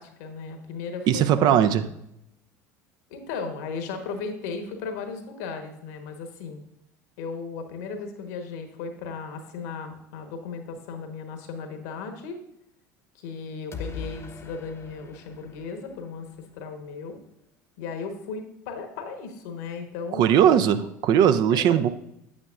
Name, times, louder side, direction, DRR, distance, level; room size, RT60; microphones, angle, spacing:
voice 1, 0.0-1.8 3.1-6.6 7.2-12.4 13.1-16.3 16.5-17.2 17.8-20.3 21.5-21.6, left 5 dB, 70° left, 1.2 m, -36 dB
voice 2, 1.1-1.8 20.1-21.9, right 9 dB, 50° right, 0.5 m, -19 dB
sound 1, 13.7-16.6, left 5 dB, 30° left, 0.9 m, -41 dB
8.6 x 8.4 x 2.5 m
hypercardioid pair, 70°, 9 cm